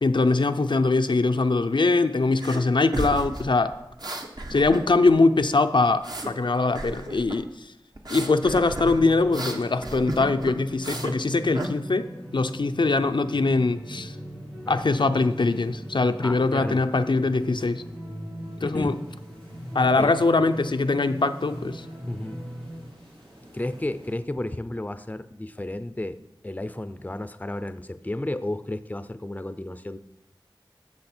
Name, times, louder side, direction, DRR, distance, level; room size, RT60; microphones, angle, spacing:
voice 1, 0.0-3.7 4.5-7.5 8.1-12.1 12.3-14.1 14.7-17.8 18.6-19.0 19.7-21.8, left 3 dB, 70° left, 8 dB, 0.5 m, -22 dB
sound 1, 2.4-2.6 2.9-5.1 5.4-6.3 6.7-7.4 7.9-11.2 11.5-11.7, right 1 dB, 55° right, 1.1 m, -33 dB
sound 2, 8.6-24.2, equal, 90° right, 2.5 m, -39 dB
voice 2, 16.2-16.8 18.6-19.0 20.0-20.2 22.1-22.4 23.5-26.2 26.4-30.0, left 1 dB, 20° left, 12 dB, 0.5 m, -32 dB
14.0 x 6.1 x 4.3 m, 0.91 s
wide cardioid pair, 50°, 8 cm